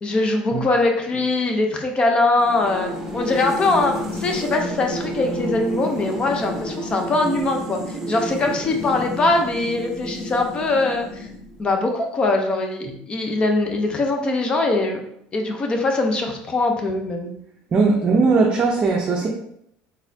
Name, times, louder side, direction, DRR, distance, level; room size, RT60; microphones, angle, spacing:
voice 1, 0.0-11.3 11.6-15.0 15.3-17.3, left 2 dB, 30° left, 3 dB, 0.7 m, -22 dB
sound 1, 2.4-11.7, equal, 10° right, 0.9 m, -31 dB
voice 2, 17.7-19.3, right 4 dB, 35° right, -1 dB, 0.6 m, -19 dB
4.0 x 3.6 x 2.7 m, 0.73 s
cardioid pair, 125°, 3 cm